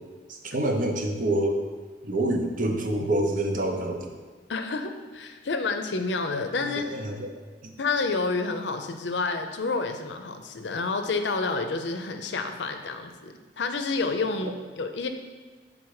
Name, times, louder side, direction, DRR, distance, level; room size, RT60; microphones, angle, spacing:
voice 1, 0.3-1.6 2.0-4.1 6.8-7.3 7.6-7.7 14.4-14.5, right 1 dB, 50° right, 3 dB, 0.7 m, -27 dB
voice 2, 4.5-6.9 7.8-15.1, left 3 dB, 85° left, 6 dB, 0.6 m, -29 dB
6.2 x 3.8 x 4.8 m, 1.4 s
head